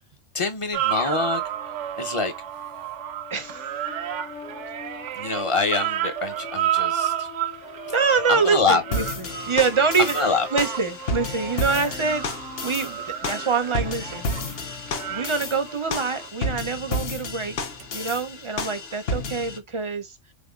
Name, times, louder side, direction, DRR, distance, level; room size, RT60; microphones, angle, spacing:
voice 1, 0.3-1.4 2.0-2.3 5.2-7.3 8.3-8.8 10.0-10.5, left 4 dB, 30° left, 0.7 m, -25 dB
sound 1, 0.7-16.3 17.8-17.9, right 12 dB, 75° right, 0.9 m, -32 dB
sound 2, 1.2-16.7, left 8 dB, 85° left, 1.1 m, -44 dB
voice 2, 3.3-3.7 7.9-9.0 9.5-14.3 14.6-14.8 15.1-17.6 17.9-20.1, right 5 dB, 35° right, 0.5 m, -25 dB
sound 3, 8.9-19.6, left 2 dB, 55° left, 1.0 m, -31 dB
4.2 x 3.4 x 2.3 m
omnidirectional pair, 1.3 m